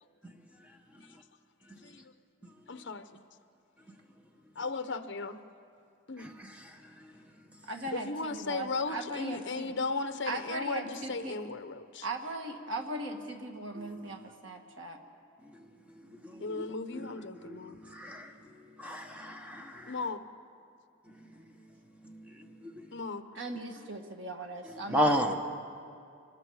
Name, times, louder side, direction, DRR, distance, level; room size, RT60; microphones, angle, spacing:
voice 1, 2.7-3.1 4.6-5.4 6.1-6.3 7.9-12.0 16.4-17.8 19.9-20.3 22.9-23.2, left 3 dB, 55° left, 10 dB, 0.9 m, -36 dB
voice 2, 6.2-7.1 13.7-14.2 15.5-16.6 16.9-18.4 18.8-20.0 22.0-22.8 24.7-25.4, equal, 5° right, 4 dB, 1.1 m, -35 dB
voice 3, 7.7-9.7 10.2-11.4 12.0-15.0 23.3-25.2, right 2 dB, 60° right, 3 dB, 1.8 m, -39 dB
26.0 x 20.0 x 4.9 m, 2.4 s
head